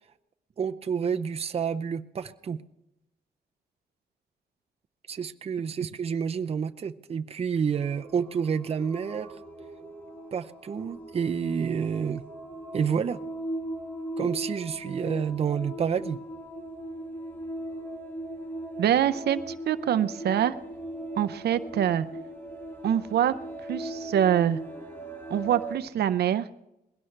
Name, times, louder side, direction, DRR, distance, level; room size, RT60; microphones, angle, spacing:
voice 1, 0.6-2.6 5.1-9.3 10.3-12.2 12.7-13.2 14.2-16.2, right 7 dB, 40° right, 8 dB, 0.6 m, -29 dB
sound 1, 7.7-25.8, right 1 dB, 10° left, 2.2 m, -39 dB
voice 2, 18.8-20.5 21.2-22.1 22.8-23.3 23.7-24.6 25.3-26.5, right 10 dB, 80° right, 12 dB, 0.6 m, -25 dB
20.5 x 17.0 x 3.3 m, 0.89 s
wide cardioid pair, 150°, 17 cm